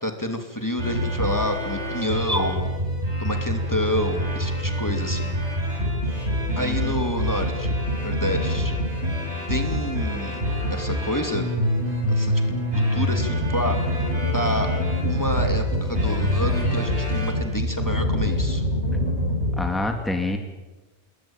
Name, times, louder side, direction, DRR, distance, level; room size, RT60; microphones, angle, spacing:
voice 1, 0.0-2.7 3.2-5.3 6.6-7.8 8.0-8.8 9.5-10.4 10.7-11.5 12.1-14.0 14.3-14.7 15.0-18.6, left 1 dB, 15° left, 5 dB, 2.7 m, -28 dB
sound 1, 0.8-19.7, equal, 85° right, 7.6 m, -25 dB
voice 2, 6.5-6.9 19.6-20.4, left 2 dB, ahead, 4 dB, 2.5 m, -27 dB
28.0 x 21.5 x 9.0 m, 1.2 s
omnidirectional pair, 1.1 m